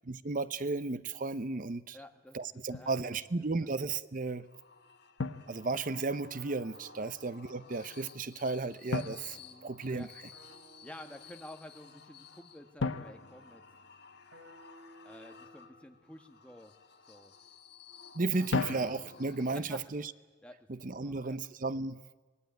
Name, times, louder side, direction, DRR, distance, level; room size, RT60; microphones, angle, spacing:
voice 1, 0.1-2.0 2.3-4.5 5.5-10.1 18.1-20.1 20.7-22.0, right 3 dB, 45° right, 15 dB, 0.7 m, -34 dB
voice 2, 1.9-2.4 2.7-3.7 7.0-7.1 9.4-10.1 10.8-13.6 15.0-16.7 17.1-17.3 18.2-18.7 19.5-19.8 20.4-21.4, left 1 dB, 5° left, 5 dB, 1.6 m, -52 dB
Drum, 2.7-3.0 5.2-6.3 8.9-10.3 12.8-14.5 18.5-19.5, left 3 dB, 80° left, 0.8 m, -37 dB
sound 1, 4.3-20.0, left 6 dB, 60° left, 1.4 m, -56 dB
sound 2, 6.3-8.7 10.3-12.7 14.3-16.6 18.3-19.7, right 1 dB, 75° right, 3.3 m, -59 dB
25.0 x 19.5 x 9.3 m, 1.3 s
head